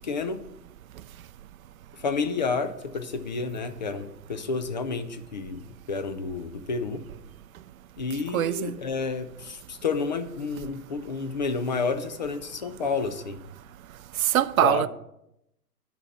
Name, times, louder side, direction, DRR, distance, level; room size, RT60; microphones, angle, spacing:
voice 1, 0.0-0.4 1.9-7.0 8.0-13.4 14.6-14.9, left 4 dB, 30° left, 0.4 m, -30 dB
voice 2, 8.3-8.8 14.2-14.9, right 12 dB, 60° right, 0.5 m, -23 dB
11.5 x 4.2 x 5.6 m
hypercardioid pair, 125°, 49 cm